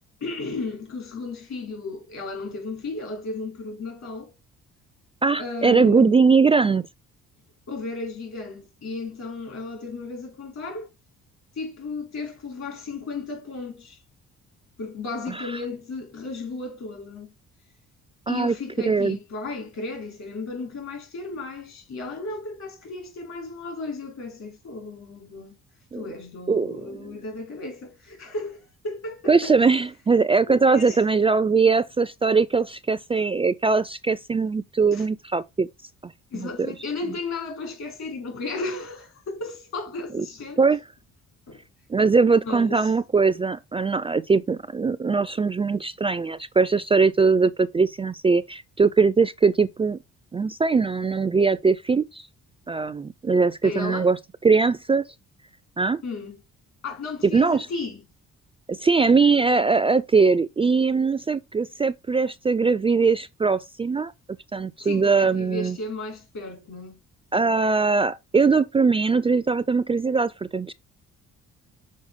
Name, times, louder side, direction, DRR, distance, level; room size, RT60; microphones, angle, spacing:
voice 1, 0.2-4.3 5.4-6.2 7.7-10.9 11.5-14.0 14.8-17.3 18.3-25.6 26.0-29.8 30.5-31.0 34.9-35.1 36.3-40.6 41.5-41.6 42.4-42.9 53.6-54.1 56.0-56.4 56.8-58.0 64.8-67.0, left 3 dB, 65° left, 2.9 m, -34 dB
voice 2, 5.2-6.8 15.3-15.4 18.3-18.6 18.9-19.2 25.9-26.1 26.5-26.9 29.3-35.7 36.0-36.5 40.1-40.3 40.6-40.8 41.9-50.0 50.3-52.3 52.7-54.2 54.4-55.1 55.8-56.0 57.2-57.7 58.7-64.1 64.5-65.8 67.3-70.7, right 4 dB, 20° right, 0.3 m, -21 dB
6.4 x 4.1 x 3.6 m
cardioid pair, 90°, 30 cm